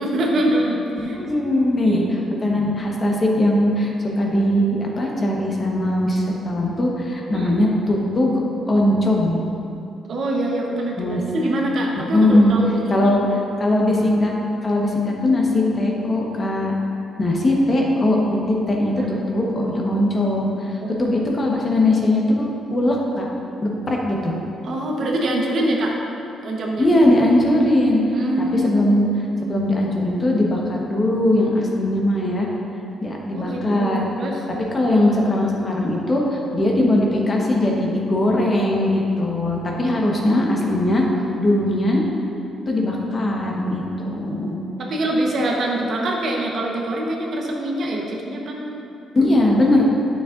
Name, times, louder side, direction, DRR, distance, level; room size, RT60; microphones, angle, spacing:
voice 1, 0.0-1.2 1.8-2.1 2.3-2.5 7.3-7.6 10.1-13.4 19.0-19.1 20.8-21.4 24.6-26.0 26.4-26.9 28.1-28.8 33.3-34.4 44.8-48.8 49.3-49.5, right 1 dB, 60° right, -1 dB, 1.0 m, -24 dB
voice 2, 1.0-9.4 11.0-11.2 12.0-12.5 12.9-13.2 13.6-14.3 14.6-16.7 17.2-23.3 23.6-24.3 26.8-28.0 28.4-29.1 29.4-32.5 33.0-34.1 34.7-41.0 41.4-42.0 42.7-44.6 49.1-49.9, left 1 dB, 35° left, -2 dB, 1.2 m, -20 dB
9.3 x 6.7 x 2.5 m, 2.9 s
cardioid pair, 90°, 0 cm